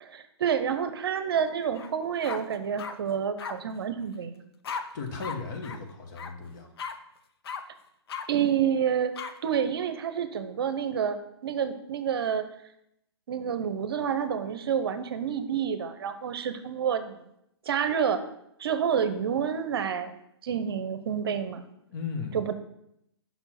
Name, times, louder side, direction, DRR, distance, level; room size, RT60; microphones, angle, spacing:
voice 1, 0.0-4.4 8.3-9.1 9.4-12.5 13.3-17.2 17.7-18.3 18.6-20.1 20.4-21.6 22.3-22.5, right 8 dB, 60° right, 10 dB, 0.7 m, -28 dB
sound 1, 1.7-1.9 2.2-2.9 3.4-3.5 4.6-4.8 5.2-5.4 5.6-5.8 6.2-6.3 6.8-6.9 7.5-7.6 8.1-8.3 9.2-9.3, left 6 dB, 60° left, 0.6 m, -35 dB
voice 2, 4.9-6.7 21.9-22.4, left 4 dB, 45° left, 3 dB, 1.3 m, -36 dB
5.7 x 4.5 x 5.8 m, 0.77 s
hypercardioid pair, 130°, 14 cm